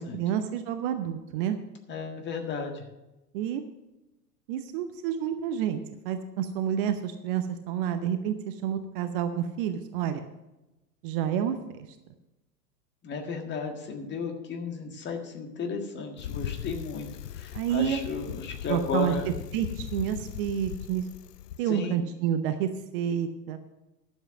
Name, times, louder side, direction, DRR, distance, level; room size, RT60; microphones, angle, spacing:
voice 1, 0.0-1.6 3.3-3.6 4.5-5.8 6.0-10.3 11.0-11.6 17.5-18.0 18.7-19.1 19.5-21.1 21.6-23.6, right 9 dB, 35° right, 9 dB, 0.7 m, -29 dB
voice 2, 1.9-2.8 13.0-19.3 21.6-22.0, left 5 dB, 20° left, 4 dB, 1.6 m, -34 dB
Bicycle, 16.2-21.6, left 11 dB, 75° left, 0.6 m, -39 dB
12.0 x 7.5 x 6.1 m, 1.0 s
figure-of-eight pair, 95°, 48 cm